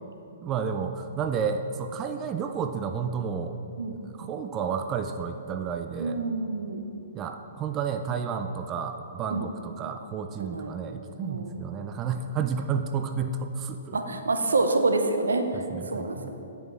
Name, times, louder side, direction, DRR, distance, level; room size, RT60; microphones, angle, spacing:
voice 1, 0.4-3.6 4.2-6.2 7.1-14.0 15.7-16.3, right 6 dB, 25° right, 7 dB, 0.3 m, -31 dB
voice 2, 6.0-6.9 9.3-9.5 10.4-10.7 11.2-11.6 13.9-16.3, right 3 dB, 80° right, 6 dB, 0.6 m, -27 dB
10.5 x 5.6 x 3.2 m, 2.9 s
hypercardioid pair, 125°, 0 cm